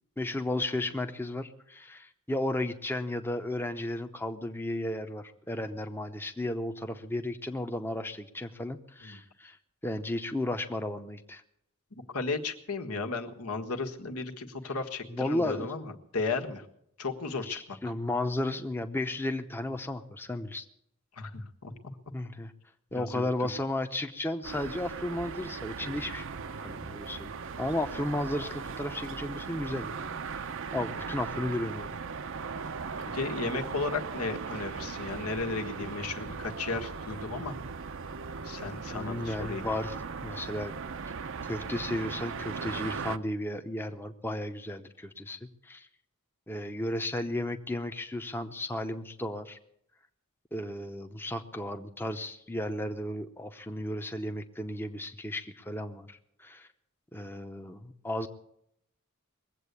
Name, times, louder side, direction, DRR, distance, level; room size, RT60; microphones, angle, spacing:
voice 1, 0.2-9.6 9.8-11.4 15.1-15.7 17.5-20.6 22.1-22.5 22.9-26.3 26.6-29.9 30.3-30.4 30.7-32.0 35.8-35.9 38.9-40.0 40.2-40.7 41.5-45.9 46.5-49.6 50.5-56.7 57.1-58.3, left 1 dB, 10° left, 6 dB, 0.8 m, -34 dB
voice 2, 11.9-16.6 17.0-17.8 21.2-21.7 22.9-23.2 33.1-37.6 38.4-39.6, left 3 dB, 80° left, 5 dB, 1.6 m, -34 dB
sound 1, 24.4-43.2, right 5 dB, 60° right, 0.6 m, -38 dB
21.0 x 8.1 x 8.2 m, 0.74 s
head